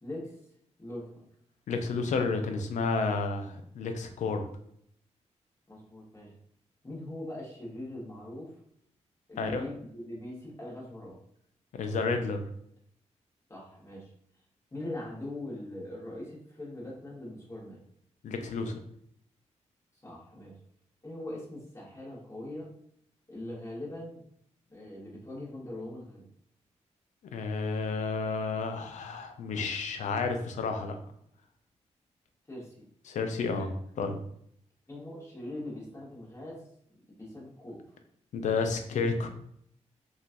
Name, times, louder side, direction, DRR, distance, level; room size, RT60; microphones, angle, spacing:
voice 1, 0.0-0.3 0.8-1.1 5.7-6.3 6.8-8.5 9.3-11.2 13.5-14.1 14.7-17.8 20.0-20.5 21.0-22.7 23.3-24.2 24.7-26.2 32.5-32.9 33.5-33.6 34.9-36.7 36.9-37.8, left 1 dB, 25° left, -5 dB, 1.4 m, -41 dB
voice 2, 1.7-4.4 9.4-9.6 11.7-12.4 18.2-18.8 27.3-31.0 33.1-33.7 34.0-34.2 38.3-39.3, left 4 dB, 85° left, 6 dB, 0.4 m, -31 dB
2.9 x 2.4 x 2.6 m, 0.68 s
cardioid pair, 85°, 12 cm